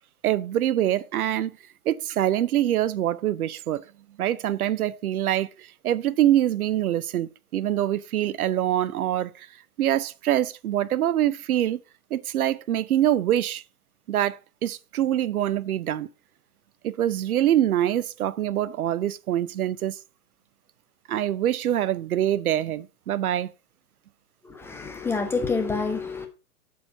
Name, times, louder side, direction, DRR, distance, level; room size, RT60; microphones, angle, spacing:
voice 1, 0.2-1.6 1.9-3.8 4.2-9.5 9.8-11.8 12.1-13.6 14.1-16.1 16.8-20.0 21.1-23.5, right 12 dB, 70° right, 0.7 m, -24 dB
voice 2, 24.4-26.3, left 4 dB, 5° left, 0.5 m, -27 dB
8.3 x 4.7 x 5.3 m
hypercardioid pair, 125°, 46 cm